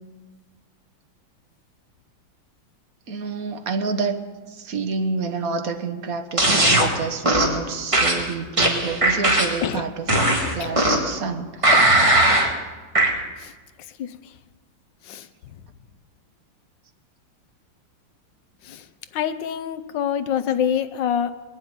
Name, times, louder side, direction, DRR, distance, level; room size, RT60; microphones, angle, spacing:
voice 1, 3.1-10.0 10.5-11.5, right 4 dB, 50° right, 7 dB, 1.3 m, -28 dB
sound 1, 6.4-6.9 7.2-7.6 7.9-9.6 10.1-11.1 11.6-12.5 12.9-13.1, right 1 dB, 15° right, 1.7 m, -18 dB
voice 2, 19.1-21.3, left 9 dB, 65° left, 11 dB, 1.3 m, -26 dB
20.5 x 7.2 x 9.4 m, 1.4 s
omnidirectional pair, 2.4 m